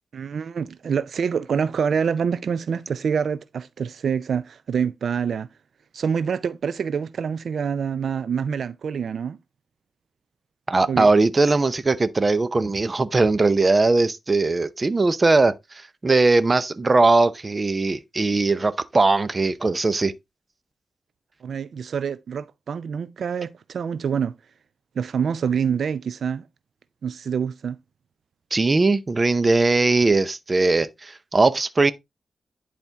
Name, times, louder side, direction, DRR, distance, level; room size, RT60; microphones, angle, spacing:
voice 1, 0.1-5.5 5.9-9.4 10.9-11.1 21.4-24.4 25.0-26.5 27.0-27.8, right 7 dB, 75° right, 0.4 m, -26 dB
voice 2, 10.7-20.1 28.5-31.9, right 3 dB, 35° right, 0.7 m, -20 dB
10.5 x 4.4 x 3.4 m
cardioid pair, 85°, 0 cm